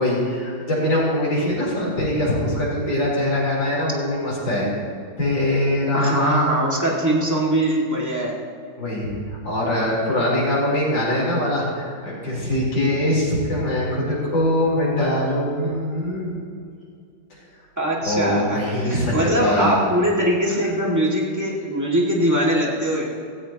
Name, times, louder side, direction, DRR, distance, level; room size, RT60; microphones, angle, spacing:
voice 1, 0.0-4.7 5.2-6.5 8.8-9.1 9.4-16.4 18.0-19.8, left 1 dB, 75° left, -6 dB, 4.8 m, -22 dB
voice 2, 5.9-8.4 17.8-23.0, right 1 dB, 10° right, -4 dB, 2.0 m, -22 dB
16.5 x 16.0 x 3.0 m, 2.3 s
omnidirectional pair, 2.0 m